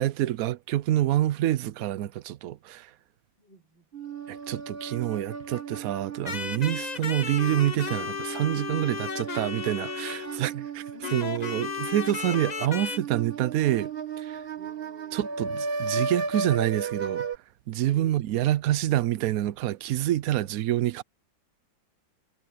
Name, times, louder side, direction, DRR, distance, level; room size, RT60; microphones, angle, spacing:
voice 1, 0.0-2.9 4.3-10.8 11.1-13.9 14.2-14.4 15.1-17.3 17.7-21.0, right 13 dB, 70° right, 0.8 m, -27 dB
voice 2, 3.4-3.9 10.9-11.5 14.5-15.4 17.8-18.2, left 9 dB, 70° left, 4.7 m, -49 dB
sound 1, 3.9-17.4, right 5 dB, 35° right, 1.4 m, -35 dB
sound 2, 6.2-10.5 11.0-13.0, left 6 dB, 45° left, 0.5 m, -34 dB
omnidirectional pair, 2.0 m